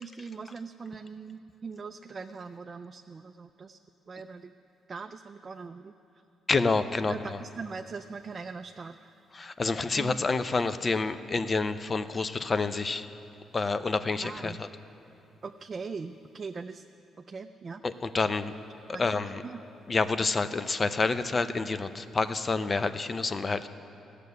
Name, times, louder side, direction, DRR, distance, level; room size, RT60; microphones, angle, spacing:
voice 1, 0.0-3.8 4.1-4.5 4.9-5.9 7.1-9.1 9.9-10.2 14.2-14.6 15.4-16.8 17.3-17.8 18.9-19.6, right 5 dB, 35° right, 7 dB, 0.4 m, -41 dB
voice 2, 6.5-7.4 9.3-13.1 13.5-14.7 17.8-18.5 19.0-19.4 19.9-23.7, left 3 dB, 30° left, 12 dB, 0.5 m, -28 dB
14.5 x 6.7 x 9.5 m, 2.7 s
cardioid pair, 90°, 0 cm